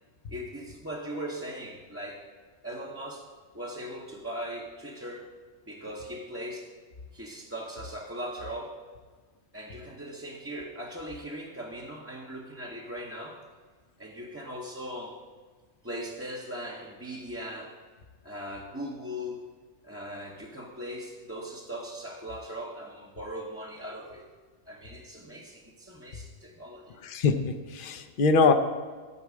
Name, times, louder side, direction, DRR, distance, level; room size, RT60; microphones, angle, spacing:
voice 1, 0.3-2.2 2.6-3.3 3.5-5.3 5.7-6.7 7.1-8.8 9.5-13.4 14.0-15.2 15.8-17.8 18.2-19.5 19.8-24.2 24.7-27.0, equal, 15° right, -3 dB, 0.9 m, -39 dB
voice 2, 27.0-28.5, left 4 dB, 55° left, 8 dB, 0.9 m, -23 dB
13.5 x 4.7 x 7.4 m, 1.5 s
omnidirectional pair, 1.2 m